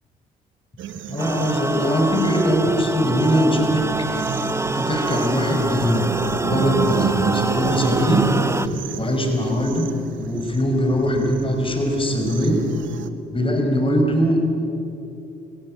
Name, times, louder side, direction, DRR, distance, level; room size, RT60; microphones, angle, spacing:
sound 1, 0.8-13.1, right 8 dB, 70° right, 1.1 m, -30 dB
voice 1, 1.1-6.1 6.4-8.2 8.9-9.9 10.1-12.6 13.3-14.4, equal, 25° left, 2 dB, 5.4 m, -21 dB
sound 2, 1.2-8.7, right 2 dB, 15° right, 0.8 m, -26 dB
sound 3, 3.8-8.8, equal, 35° right, 7.1 m, -35 dB
25.5 x 17.0 x 8.0 m, 2.8 s
supercardioid pair, 55°, 20 cm